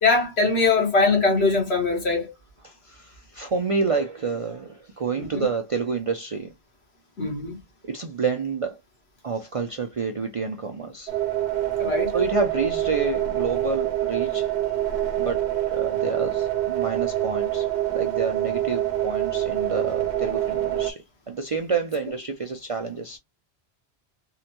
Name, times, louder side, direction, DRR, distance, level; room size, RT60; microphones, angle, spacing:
voice 1, 0.0-2.3 5.2-5.4 7.2-7.6 11.8-12.1, left 3 dB, 75° left, 1.6 m, -22 dB
voice 2, 2.6-6.5 7.9-8.8 9.2-11.1 12.1-14.5 15.2-23.2, right 4 dB, 50° right, 0.4 m, -29 dB
sound 1, 11.1-20.9, right 13 dB, 80° right, 0.9 m, -26 dB
3.7 x 2.1 x 2.8 m
omnidirectional pair, 1.1 m